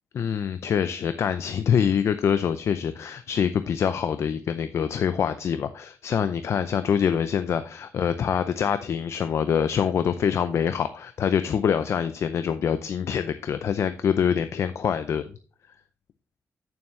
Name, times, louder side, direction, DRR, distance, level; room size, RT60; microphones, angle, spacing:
voice 1, 0.1-15.3, left 7 dB, 60° left, 11 dB, 0.5 m, -25 dB
8.8 x 7.1 x 3.2 m, 0.38 s
wide cardioid pair, 145°, 5 cm